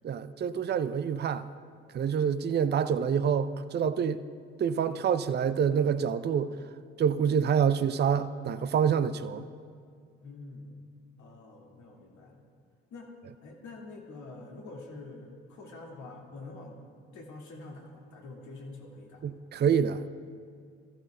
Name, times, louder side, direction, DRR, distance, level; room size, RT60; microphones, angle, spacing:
voice 1, 0.0-1.5 1.9-4.2 4.6-6.5 7.0-9.4 19.2-20.0, right 7 dB, 30° right, 0.5 m, -27 dB
voice 2, 10.2-10.8 11.2-12.5 12.9-13.1 13.4-16.8 17.1-19.4, left 2 dB, 60° left, 2.3 m, -46 dB
24.0 x 14.0 x 2.3 m
hypercardioid pair, 50°, 32 cm